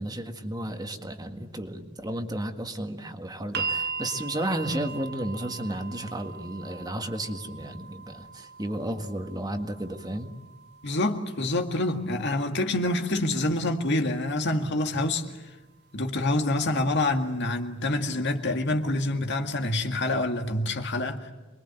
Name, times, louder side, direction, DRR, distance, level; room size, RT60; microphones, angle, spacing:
voice 1, 0.0-10.3, right 1 dB, 20° right, 1.8 m, -33 dB
sound 1, 3.5-15.6 16.7-16.8, right 5 dB, 55° right, 0.9 m, -40 dB
voice 2, 10.8-15.2 15.9-21.3, left 2 dB, 60° left, 2.1 m, -26 dB
27.5 x 22.5 x 9.0 m
head